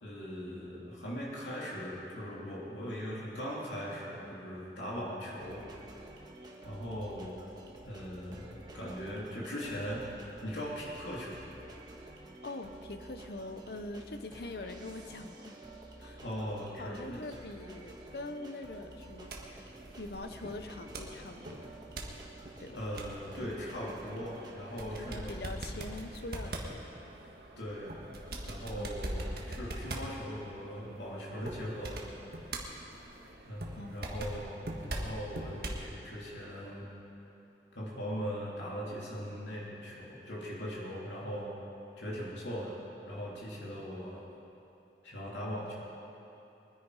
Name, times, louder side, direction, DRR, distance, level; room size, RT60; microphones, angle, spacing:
voice 1, 0.0-5.6 6.6-7.4 7.8-10.1 10.4-11.5 16.2-17.3 22.7-25.4 27.6-28.0 28.4-32.1 33.5-34.6 34.9-36.9 37.7-41.5 42.0-42.8 43.1-44.2 45.0-45.7, equal, 90° left, -5 dB, 3.1 m, -40 dB
sound 1, 5.4-24.5, right 1 dB, 25° right, 1.6 m, -51 dB
voice 2, 12.4-15.6 16.0-16.2 16.8-21.6 22.6-22.8 24.9-26.8 28.8-29.0 33.8-34.2, left 2 dB, 60° left, 8 dB, 0.9 m, -43 dB
sound 2, 18.9-35.9, right 1 dB, 60° right, 1.7 m, -42 dB
23.0 x 10.0 x 5.0 m, 2.9 s
head